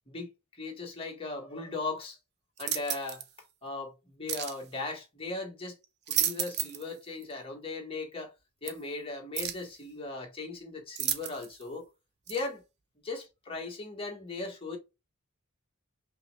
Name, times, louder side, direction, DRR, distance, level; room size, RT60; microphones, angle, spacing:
voice 1, 0.6-2.2 2.6-3.2 3.6-5.8 6.1-8.3 8.6-11.8 12.3-12.6 13.0-14.8, left 3 dB, 25° left, 1.7 m, -38 dB
sound 1, 2.6-3.3 4.3-4.6 5.8-6.9 7.2-7.3 8.7-8.8 9.3-9.7 10.9-11.6 12.3-12.4, right 10 dB, 50° right, 0.7 m, -32 dB
5.4 x 3.2 x 2.5 m
head